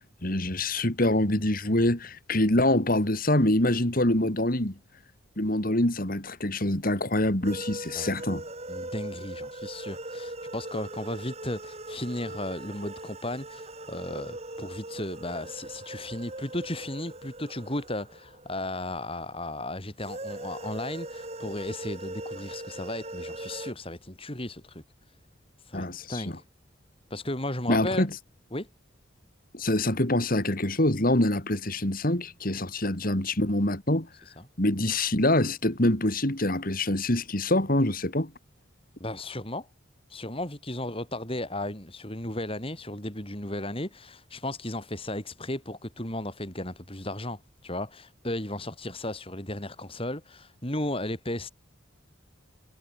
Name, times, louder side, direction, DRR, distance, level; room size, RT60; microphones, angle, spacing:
voice 1, 0.2-4.8 5.4-8.4 25.7-26.2 27.7-28.1 29.5-34.1 34.6-38.3, left 1 dB, 45° left, 3.2 m, -25 dB
sound 1, 7.4-19.2 20.0-23.7, right 1 dB, 35° right, 7.5 m, -40 dB
voice 2, 8.7-25.2 25.6-26.4 27.1-28.1 28.5-28.7 34.3-34.4 39.0-39.7 40.1-51.5, left 1 dB, 30° left, 6.1 m, -35 dB
head